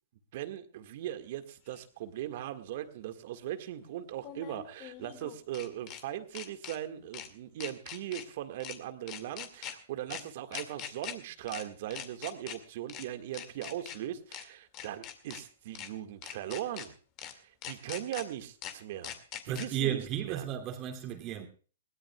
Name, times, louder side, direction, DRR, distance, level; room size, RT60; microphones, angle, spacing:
voice 1, 0.3-16.9 17.3-19.1 19.4-20.4, right 12 dB, 50° right, 1.7 m, -39 dB
sound 1, 1.7-1.8 4.2-6.0 6.4-6.8 7.1-7.3 7.6-8.3 8.6-8.8 9.1-9.7 10.1-10.2 10.5-11.1 11.5-11.6 11.9-12.6 12.9-13.0 13.3-14.0 14.3-14.4 14.7-15.4 15.8-15.9 16.2-16.9 17.2-17.3 17.6-18.2 18.6-18.7 19.0-19.7, left 10 dB, 35° left, 2.1 m, -42 dB
voice 2, 19.5-21.5, right 10 dB, 30° right, 2.7 m, -34 dB
21.5 x 17.5 x 2.3 m
hypercardioid pair, 130°, 0 cm